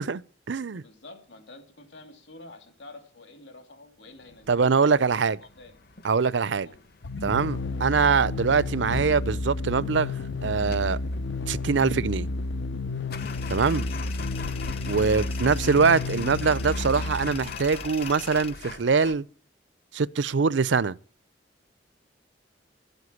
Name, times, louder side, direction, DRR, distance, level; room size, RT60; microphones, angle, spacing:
voice 1, 0.0-0.8 4.5-5.4 6.0-6.7 7.2-10.1 10.4-11.0 11.5-12.3 13.5-13.8 14.9-19.3 19.9-21.0, right 5 dB, 80° right, 0.6 m, -23 dB
voice 2, 0.7-5.8 6.6-6.8 13.8-14.0 15.0-15.2, left 2 dB, 70° left, 3.1 m, -49 dB
sound 1, 4.2-19.2, left 4 dB, 55° left, 1.0 m, -43 dB
sound 2, 7.0-17.8, left 3 dB, 90° left, 0.7 m, -31 dB
Tools, 13.2-18.5, left 8 dB, 35° left, 0.7 m, -43 dB
13.5 x 8.0 x 9.4 m
head